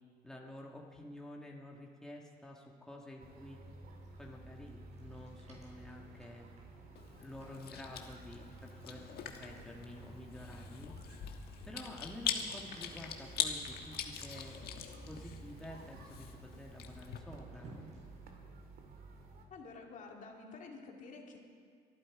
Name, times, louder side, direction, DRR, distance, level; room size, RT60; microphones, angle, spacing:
voice 1, 0.2-3.6 4.2-6.5 7.2-10.9 11.7-14.6 15.1-17.7, left 1 dB, 5° left, -2 dB, 1.7 m, -50 dB
sound 1, 3.2-19.5, right 3 dB, 60° right, 2.3 m, -54 dB
sound 2, 4.0-18.3, right 2 dB, 40° right, 4.7 m, -61 dB
Chewing mastication, 7.0-17.2, left 8 dB, 70° left, 1.4 m, -43 dB
voice 2, 19.5-21.4, left 4 dB, 50° left, 1 dB, 2.6 m, -50 dB
23.5 x 12.0 x 4.8 m, 2.1 s
cardioid pair, 110°, 17 cm